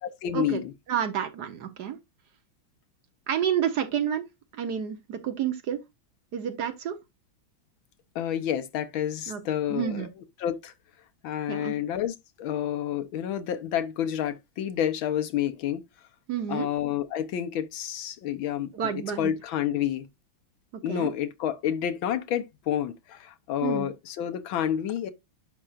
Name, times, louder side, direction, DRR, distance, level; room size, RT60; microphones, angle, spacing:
voice 1, 0.2-0.7 8.1-10.1 10.4-10.7 11.2-15.8 16.5-18.7 19.2-20.1 20.8-25.1, left 10 dB, 80° left, 1.7 m, -29 dB
voice 2, 0.9-2.0 3.3-4.3 4.5-5.8 6.3-7.0 9.3-9.4 9.7-10.1 11.5-11.8 16.3-16.7 18.7-19.3 20.7-21.1 23.6-23.9, right 9 dB, 60° right, 1.4 m, -29 dB
10.0 x 6.1 x 2.4 m
omnidirectional pair, 2.2 m